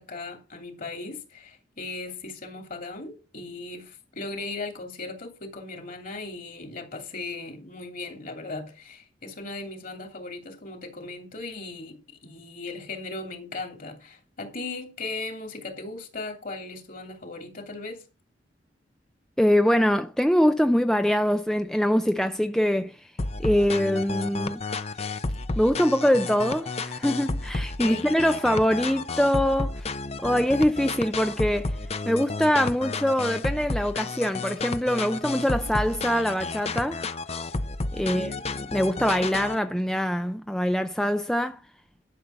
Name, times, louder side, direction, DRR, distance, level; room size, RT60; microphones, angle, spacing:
voice 1, 0.0-18.0 27.8-28.1 38.0-38.5, left 3 dB, 50° left, 2.8 m, -37 dB
voice 2, 19.4-23.1 23.4-24.6 25.6-29.9 30.2-31.8 32.1-37.0 37.9-38.3 38.7-41.6, equal, 5° left, 0.5 m, -23 dB
sound 1, 23.2-39.6, left 3 dB, 35° left, 0.7 m, -32 dB
12.0 x 6.7 x 5.7 m
head